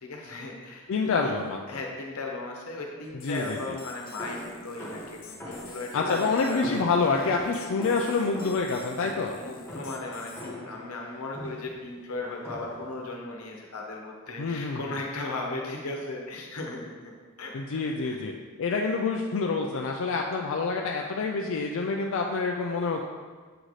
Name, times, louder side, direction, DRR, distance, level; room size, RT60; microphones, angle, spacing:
voice 1, 0.0-1.3 1.7-6.6 9.3-16.9 17.4-18.2, left 2 dB, 90° left, 0 dB, 1.0 m, -37 dB
voice 2, 0.9-1.8 3.1-3.8 5.9-9.4 14.4-15.0 17.5-18.3 18.6-23.0, left 4 dB, 65° left, 1 dB, 0.4 m, -27 dB
sound 1, 3.2-10.4, left 4 dB, 40° left, 0.8 m, -47 dB
sound 2, 4.2-10.8 11.3-11.8 12.4-12.9, left 1 dB, 10° left, 1.0 m, -41 dB
7.7 x 4.0 x 3.1 m, 1.5 s
head